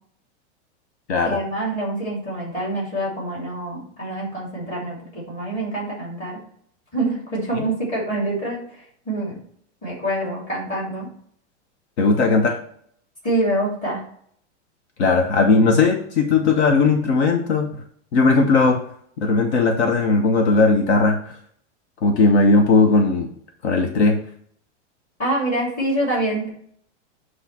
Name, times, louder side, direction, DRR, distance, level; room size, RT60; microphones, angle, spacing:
voice 1, 1.2-6.4 6.9-8.6 9.0-9.4 9.8-11.1 13.2-14.0 25.2-26.5, right 1 dB, 20° left, -5 dB, 2.9 m, -25 dB
voice 2, 12.0-12.6 15.0-17.7 18.1-18.8 19.2-21.4 22.0-23.3 23.6-24.2, left 3 dB, 65° left, 4 dB, 1.0 m, -17 dB
8.2 x 3.3 x 5.9 m, 0.63 s
supercardioid pair, 170°, 36 cm